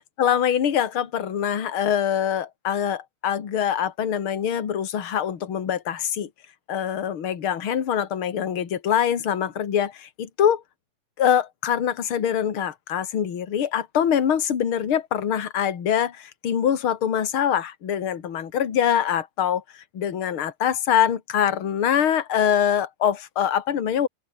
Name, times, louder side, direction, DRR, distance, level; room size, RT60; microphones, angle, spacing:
voice 1, 0.2-6.3 6.7-10.6 11.2-24.1, left 9 dB, 40° left, 2.6 m, -24 dB
open air
omnidirectional pair, 4.2 m